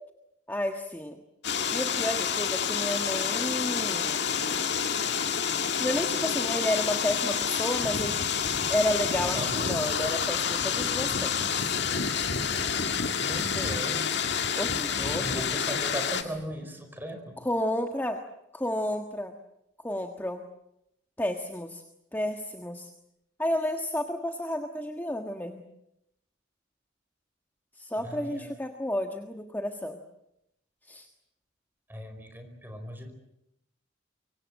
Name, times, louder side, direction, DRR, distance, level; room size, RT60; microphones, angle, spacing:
voice 1, 0.5-1.2 1.7-4.2 5.8-8.2 8.7-11.8 14.6-15.4 17.4-18.2 18.5-19.3 19.8-20.4 21.2-21.8 22.1-22.9 23.4-25.6 27.7-30.0 30.9-31.1, left 1 dB, 10° left, 4 dB, 1.5 m, -31 dB
sound 1, 1.4-16.2, left 7 dB, 60° left, 2.0 m, -28 dB
voice 2, 9.3-9.8 13.2-14.3 15.2-17.4 28.0-28.6 31.9-33.1, right 1 dB, 10° right, 6 dB, 5.0 m, -38 dB
25.0 x 24.5 x 7.7 m, 0.81 s
head